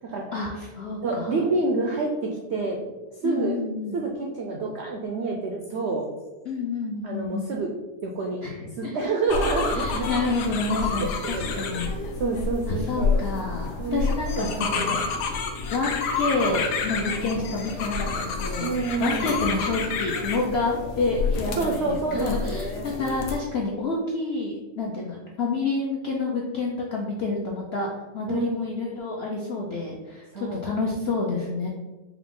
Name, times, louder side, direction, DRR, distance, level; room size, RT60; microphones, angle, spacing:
voice 1, 0.3-1.3 3.2-4.0 6.4-7.5 8.4-9.1 9.7-11.9 12.7-15.1 15.7-27.9 28.1-31.7, left 3 dB, 70° left, -2 dB, 0.6 m, -29 dB
voice 2, 1.0-2.8 3.2-3.6 3.9-6.1 7.0-7.7 8.0-8.4 8.7-10.1 10.9-13.2 13.8-15.0 18.6-19.4 21.5-22.9 28.3-28.5 30.3-30.6, right 3 dB, 80° right, 0 dB, 0.6 m, -28 dB
sound 1, 9.3-23.4, left 4 dB, 90° left, 1.2 m, -29 dB
4.9 x 2.4 x 3.6 m, 1.2 s
omnidirectional pair, 1.7 m